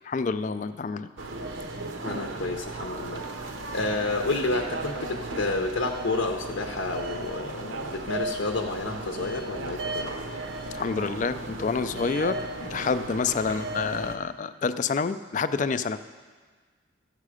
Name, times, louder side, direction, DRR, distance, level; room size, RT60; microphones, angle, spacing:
voice 1, 0.0-1.1 10.7-16.0, left 5 dB, 40° left, 13 dB, 0.3 m, -28 dB
sound 1, 1.2-14.2, right 2 dB, 75° right, 0.8 m, -35 dB
voice 2, 2.0-10.1, left 3 dB, 75° left, 3 dB, 0.6 m, -30 dB
13.5 x 7.5 x 4.9 m, 1.5 s
head